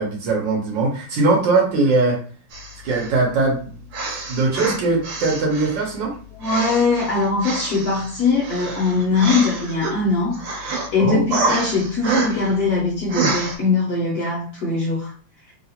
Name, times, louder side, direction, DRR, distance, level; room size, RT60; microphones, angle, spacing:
voice 1, 0.0-2.2 2.8-3.7 4.3-6.2 11.0-11.2, right 3 dB, 65° right, -1 dB, 1.5 m, -20 dB
sound 1, 2.5-3.2 3.9-5.9 6.4-9.9 10.3-10.9 11.3-12.6 13.1-13.6, right 3 dB, 90° right, 1.8 m, -27 dB
voice 2, 6.4-15.1, left 4 dB, 60° left, -4 dB, 1.1 m, -21 dB
3.6 x 2.4 x 2.8 m, 0.42 s
omnidirectional pair, 2.3 m